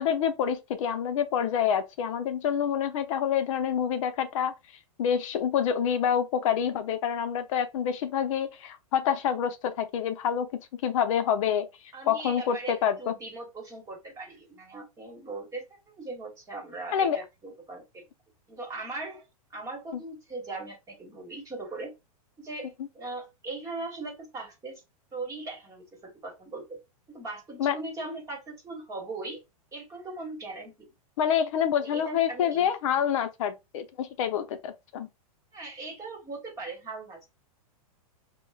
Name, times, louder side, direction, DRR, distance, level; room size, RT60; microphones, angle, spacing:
voice 1, 0.0-4.5 5.0-11.7 12.1-13.1 16.9-17.2 27.6-27.8 31.2-35.1, left 8 dB, 55° left, 0.6 m, -27 dB
voice 2, 11.9-18.0 18.5-19.3 19.5-21.9 22.4-24.8 25.1-26.8 27.1-29.4 29.7-30.9 31.8-33.0 35.5-37.2, right 3 dB, 15° right, 1.3 m, -39 dB
5.2 x 2.1 x 2.3 m
hypercardioid pair, 140°, 19 cm